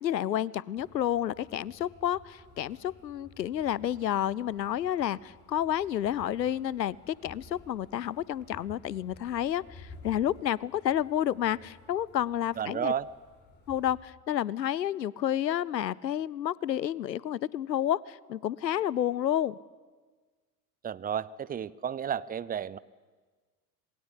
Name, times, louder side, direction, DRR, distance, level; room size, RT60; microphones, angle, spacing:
voice 1, 0.0-12.9 13.7-19.6, left 11 dB, 85° left, 24 dB, 0.7 m, -30 dB
sound 1, 0.8-13.9, left 2 dB, 20° left, 6.5 m, -54 dB
voice 2, 12.6-13.1 20.8-22.8, right 8 dB, 20° right, 19 dB, 0.7 m, -32 dB
27.0 x 21.0 x 8.4 m, 1.4 s
figure-of-eight pair, 75°, 50 cm